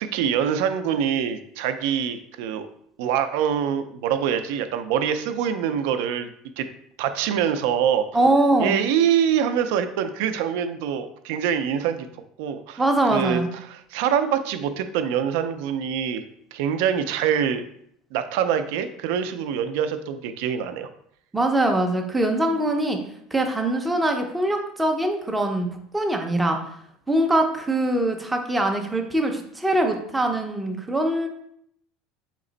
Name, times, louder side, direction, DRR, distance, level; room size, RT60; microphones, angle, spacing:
voice 1, 0.0-2.7 3.0-6.3 6.6-6.7 7.0-8.1 8.6-12.1 12.4-12.8 13.1-16.2 16.5-17.6 18.1-20.9, right 8 dB, 70° right, 9 dB, 0.4 m, -24 dB
voice 2, 8.1-8.8 12.8-13.5 21.3-23.0 23.3-25.7 25.9-26.6 27.1-31.3, right 1 dB, 5° right, 3 dB, 0.5 m, -22 dB
4.2 x 2.9 x 3.8 m, 0.70 s
cardioid pair, 170°, 0 cm